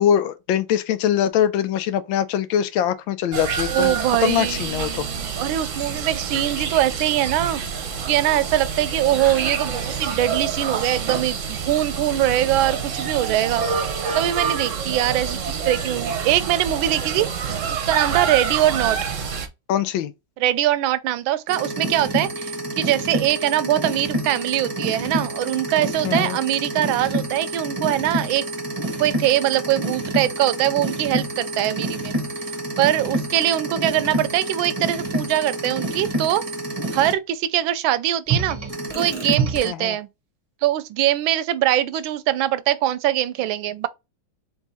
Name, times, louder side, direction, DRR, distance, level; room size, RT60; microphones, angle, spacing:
voice 1, 0.0-5.0 19.7-20.1 26.0-26.4 39.6-40.0, left 10 dB, 85° left, 1.4 m, -22 dB
sound 1, 3.3-19.5, right 6 dB, 55° right, 0.9 m, -27 dB
voice 2, 3.7-7.6 8.1-13.6 14.1-17.5 17.9-19.0 20.4-28.4 29.0-32.1 32.8-36.4 36.9-38.6 38.9-40.1 40.6-43.9, right 13 dB, 90° right, 1.4 m, -22 dB
sound 2, 21.5-37.1 38.3-39.7, right 1 dB, 25° right, 0.7 m, -28 dB
3.6 x 3.6 x 4.0 m
omnidirectional pair, 2.1 m